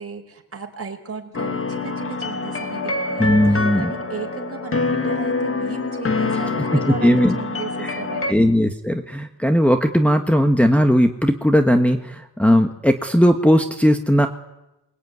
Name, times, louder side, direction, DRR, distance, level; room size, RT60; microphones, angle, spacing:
voice 1, 0.0-8.5, right 6 dB, 35° right, 4 dB, 4.9 m, -35 dB
sound 1, 1.3-8.3, left 3 dB, 35° left, 2.1 m, -25 dB
voice 2, 3.2-3.9 6.7-7.3 7.8-7.9 8.3-14.3, equal, 5° left, 4 dB, 1.5 m, -17 dB
27.5 x 22.5 x 9.6 m, 0.94 s
cardioid pair, 115°, 38 cm